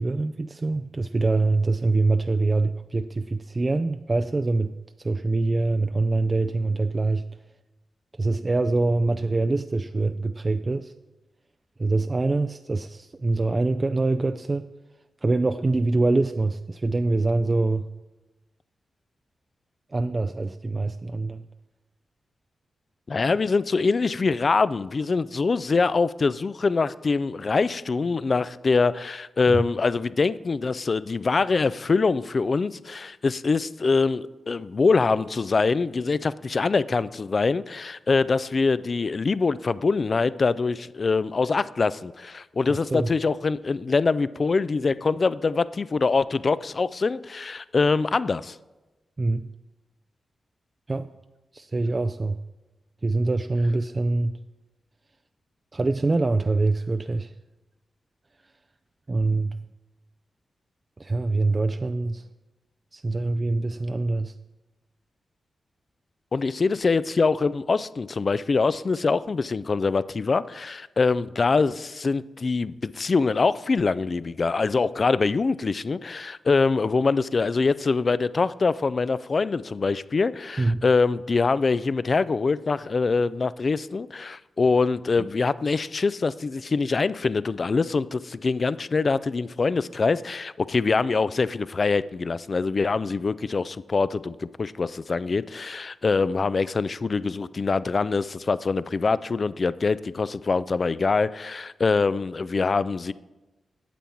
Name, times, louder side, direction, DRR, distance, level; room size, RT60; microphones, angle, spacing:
voice 1, 0.0-4.7 5.0-7.2 8.2-10.9 11.8-14.7 15.2-17.9 19.9-21.4 29.5-29.6 42.8-43.1 49.2-49.5 50.9-51.1 51.5-52.4 53.0-54.3 55.7-57.3 59.1-59.6 61.0-62.2 62.9-64.3 80.6-80.8 85.2-85.3, right 3 dB, 40° right, 8 dB, 0.3 m, -24 dB
voice 2, 23.1-48.6 66.3-103.1, left 4 dB, 55° left, 17 dB, 0.3 m, -24 dB
9.1 x 7.1 x 4.4 m, 1.1 s
supercardioid pair, 40°, 0 cm